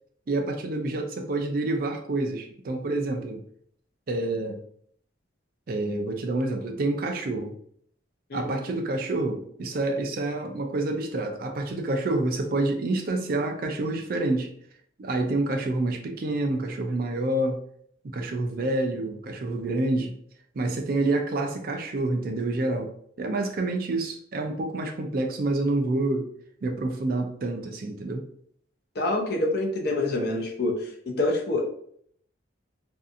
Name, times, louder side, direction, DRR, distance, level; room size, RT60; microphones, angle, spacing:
voice 1, 0.3-3.4 4.1-4.6 5.7-7.5 8.3-14.5 15.0-17.6 18.0-20.2 20.5-22.9 23.2-26.3 26.6-28.2, right 2 dB, 45° right, 3 dB, 0.4 m, -28 dB
voice 2, 28.9-31.6, left 2 dB, 55° left, 1 dB, 0.5 m, -26 dB
2.6 x 2.4 x 2.4 m, 0.65 s
head